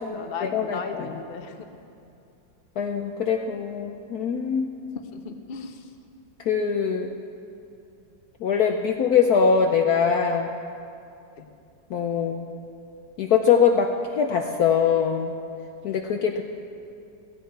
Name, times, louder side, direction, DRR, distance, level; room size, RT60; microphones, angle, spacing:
voice 1, 0.0-1.7 5.1-5.9 11.4-11.5, left 5 dB, 40° left, 5 dB, 0.9 m, -36 dB
voice 2, 0.5-1.1 2.8-4.7 6.4-7.1 8.4-10.5 11.9-12.5 13.2-15.3 15.8-16.4, left 6 dB, 65° left, 4 dB, 1.0 m, -22 dB
17.0 x 15.5 x 4.6 m, 2.6 s
omnidirectional pair, 2.1 m